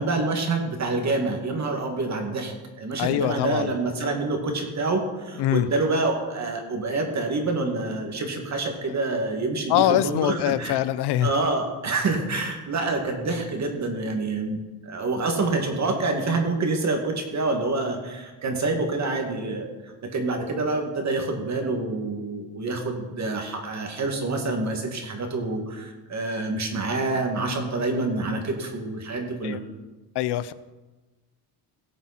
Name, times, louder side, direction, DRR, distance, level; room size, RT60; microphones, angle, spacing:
voice 1, 0.0-10.8 11.2-14.6 14.9-19.7 20.1-29.6, right 3 dB, 40° right, 3 dB, 2.2 m, -27 dB
voice 2, 3.0-3.7 5.4-5.7 9.7-11.3 29.4-29.6 30.2-30.5, left 13 dB, 65° left, 16 dB, 0.7 m, -23 dB
18.0 x 7.3 x 4.3 m, 1.2 s
cardioid pair, 120°, 43 cm